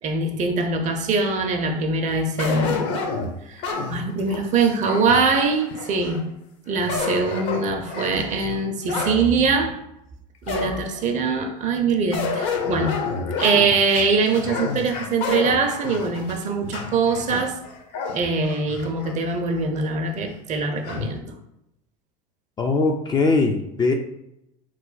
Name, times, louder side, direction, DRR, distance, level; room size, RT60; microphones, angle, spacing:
voice 1, 0.0-3.0 3.4-3.6 3.9-6.3 6.7-9.8 10.4-13.0 13.4-17.6 18.1-21.3, right 4 dB, 35° right, 0.6 m, -23 dB
sound 1, 2.4-6.2 6.7-9.2 9.7-9.8 10.5-11.1 12.1-19.2 19.6-19.7 20.8-21.2, left 4 dB, 55° left, 0.8 m, -29 dB
voice 2, 22.6-23.9, left 3 dB, 20° left, 0.4 m, -20 dB
3.1 x 2.1 x 3.9 m
hypercardioid pair, 95°, 21 cm